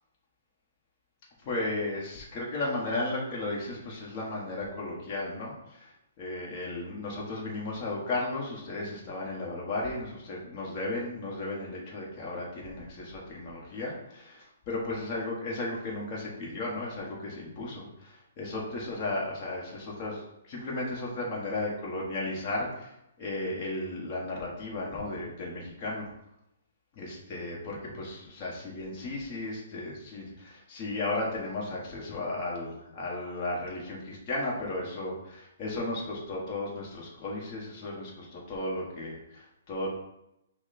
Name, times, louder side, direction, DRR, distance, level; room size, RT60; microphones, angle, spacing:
voice 1, 1.4-26.0 27.0-39.9, left 2 dB, 30° left, -4 dB, 1.2 m, -35 dB
5.8 x 2.2 x 4.1 m, 0.84 s
hypercardioid pair, 155°, 0 cm